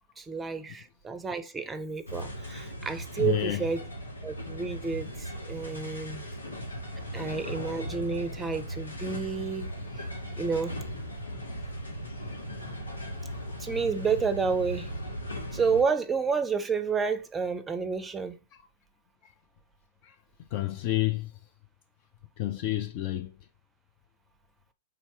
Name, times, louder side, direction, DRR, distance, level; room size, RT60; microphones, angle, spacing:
voice 1, 0.2-3.8 4.2-6.3 7.1-9.7 10.4-10.7 13.6-14.9 15.5-18.4, right 5 dB, 15° right, 0.6 m, -30 dB
sound 1, 2.1-15.8, equal, 85° left, 1.1 m, -38 dB
voice 2, 3.2-3.7 7.1-7.2 18.5-18.6 20.0-21.3 22.4-23.4, left 14 dB, 45° left, 0.4 m, -30 dB
3.7 x 2.8 x 4.5 m
figure-of-eight pair, 110°, 0 cm